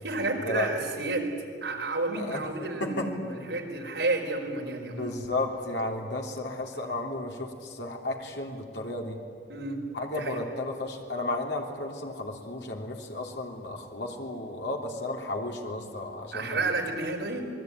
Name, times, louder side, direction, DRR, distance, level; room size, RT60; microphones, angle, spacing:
voice 1, 0.0-1.3 1.6-5.2 9.5-9.8 10.1-10.4 16.3-17.5, right 2 dB, 75° right, 1 dB, 4.8 m, -31 dB
voice 2, 4.9-9.2 9.9-16.6, left 2 dB, 75° left, 1 dB, 3.1 m, -33 dB
27.0 x 21.0 x 9.4 m, 2.2 s
head